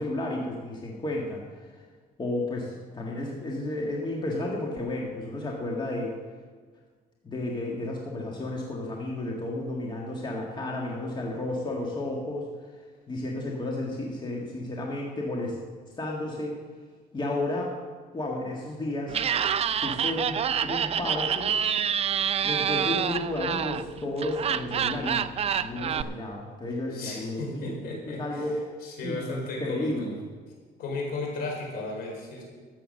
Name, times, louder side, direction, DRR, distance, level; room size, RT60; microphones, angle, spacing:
voice 1, 0.0-1.8 2.2-6.2 7.2-12.5 13.1-15.6 16.0-16.6 17.1-17.7 18.1-19.3 19.8-21.6 22.4-25.3 25.6-28.6 29.0-30.2, left 2 dB, 25° left, -1 dB, 1.9 m, -32 dB
Laughter, 19.1-26.0, right 8 dB, 35° right, 0.5 m, -27 dB
voice 2, 26.9-28.4 28.8-30.1 30.8-32.4, left 2 dB, 65° left, 0 dB, 4.6 m, -35 dB
13.0 x 8.4 x 6.5 m, 1.5 s
cardioid pair, 110°, 17 cm